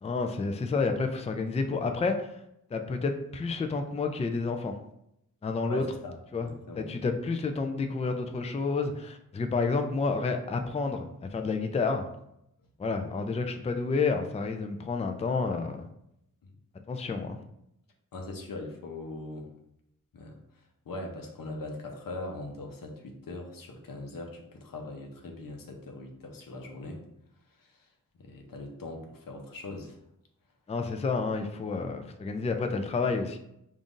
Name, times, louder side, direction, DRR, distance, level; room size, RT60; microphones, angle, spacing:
voice 1, 0.0-2.4 2.7-4.7 5.4-5.8 6.3-6.5 6.7-12.1 12.8-15.8 16.9-17.4 30.7-33.4, left 4 dB, 20° left, 5 dB, 0.3 m, -30 dB
voice 2, 5.7-6.9 18.1-19.5 20.1-20.4 20.9-27.0 27.6-27.8 28.2-30.0, left 2 dB, 90° left, 2 dB, 0.7 m, -40 dB
5.3 x 2.5 x 2.5 m, 0.80 s
wide cardioid pair, 80°, 33 cm